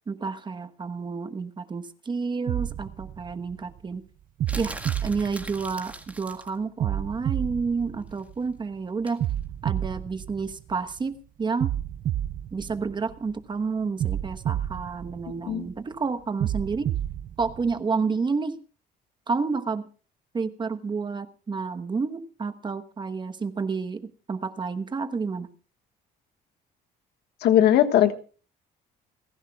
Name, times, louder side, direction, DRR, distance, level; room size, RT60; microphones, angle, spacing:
voice 1, 0.1-4.0 4.6-9.3 9.6-11.7 12.5-16.9 17.4-18.6 19.3-19.9 20.3-25.5, right 4 dB, 25° right, 9 dB, 1.1 m, -30 dB
sound 1, 2.5-3.8 4.4-6.1 6.8-8.6 9.2-11.0 11.6-13.4 14.0-15.7 16.4-17.8, right 11 dB, 50° right, 0.6 m, -30 dB
Paper crumple, 4.5-6.6 9.1-9.3, right 1 dB, 10° right, 1.9 m, -40 dB
voice 2, 27.4-28.1, left 11 dB, 75° left, 8 dB, 1.6 m, -19 dB
29.5 x 11.0 x 2.4 m, 0.39 s
cardioid pair, 110°, 17 cm